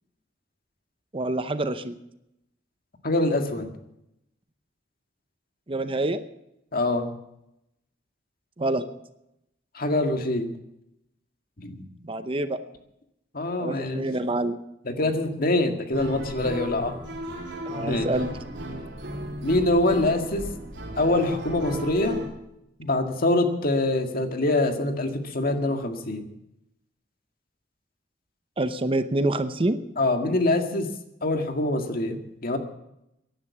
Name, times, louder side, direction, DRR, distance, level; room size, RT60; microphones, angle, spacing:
voice 1, 1.1-1.9 5.7-6.2 8.6-8.8 12.0-12.6 13.6-14.6 17.7-18.3 28.6-29.8, right 2 dB, 30° right, 11 dB, 0.7 m, -26 dB
voice 2, 3.0-3.7 6.7-7.1 9.7-10.5 11.6-11.8 13.3-14.1 14.9-17.0 17.9-18.1 19.4-20.5 21.0-22.2 22.8-26.2 30.0-30.9 31.2-32.6, left 2 dB, 55° left, 6 dB, 1.9 m, -24 dB
sound 1, 15.9-22.3, equal, 75° right, 3.8 m, -34 dB
16.5 x 11.0 x 7.2 m, 0.84 s
head